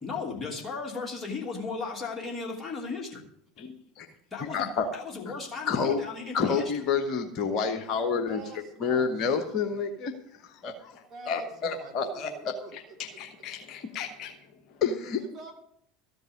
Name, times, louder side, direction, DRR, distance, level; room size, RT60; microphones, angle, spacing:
voice 1, 0.0-3.2 4.3-6.7, left 4 dB, 20° left, -1 dB, 2.8 m, -36 dB
voice 2, 3.6-4.1 4.4-4.9 5.6-6.0 6.3-8.4 8.8-10.1 10.4-14.3 14.8-15.3, left 5 dB, 45° left, 7 dB, 1.1 m, -29 dB
voice 3, 8.3-9.8 11.1-13.0 15.2-15.5, right 4 dB, 35° right, 1 dB, 2.8 m, -47 dB
14.0 x 5.3 x 9.2 m, 0.70 s
figure-of-eight pair, 75°, 0 cm